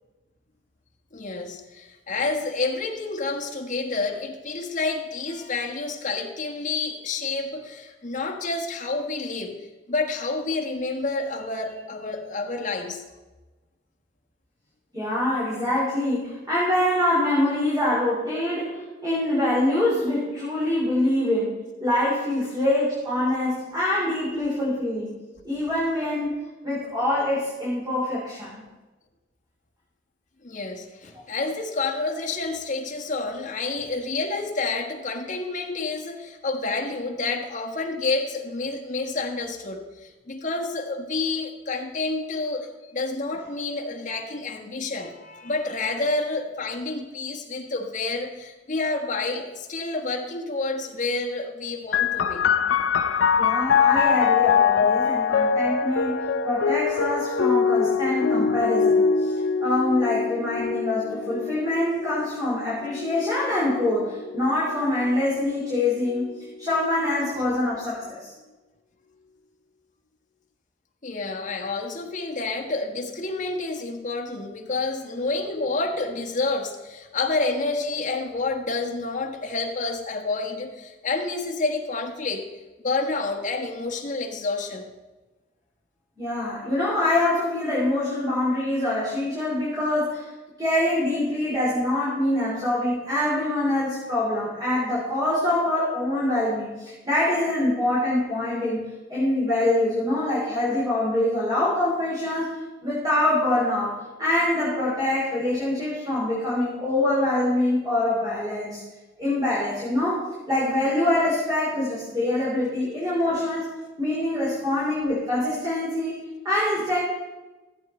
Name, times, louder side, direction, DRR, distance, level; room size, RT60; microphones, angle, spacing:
voice 1, 1.1-9.6 9.9-13.0 30.4-52.4 58.4-58.5 71.0-82.5 82.8-84.9, left 3 dB, 45° left, 1 dB, 1.4 m, -29 dB
voice 2, 14.9-21.5 21.8-25.1 25.4-26.4 26.6-28.6 53.4-59.3 59.6-66.2 66.6-68.3 86.2-90.2 90.6-98.8 99.1-102.5 102.8-108.8 109.2-113.7 114.0-116.2 116.4-117.0, left 1 dB, 20° right, -8 dB, 3.3 m, -24 dB
sound 1, 51.9-65.2 66.0-66.8, left 6 dB, 90° left, 0.5 m, -23 dB
14.0 x 8.1 x 4.3 m, 1.2 s
head